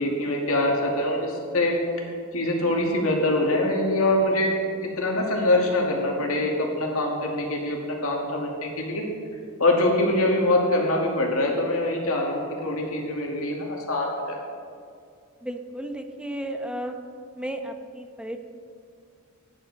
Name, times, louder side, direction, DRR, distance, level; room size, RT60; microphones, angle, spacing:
voice 1, 0.0-1.8 2.3-4.5 4.8-9.0 9.6-14.4, left 1 dB, 70° left, 0 dB, 2.3 m, -24 dB
voice 2, 15.4-16.9 17.4-18.4, right 1 dB, 5° right, 5 dB, 0.9 m, -33 dB
16.0 x 10.0 x 4.2 m, 2.3 s
head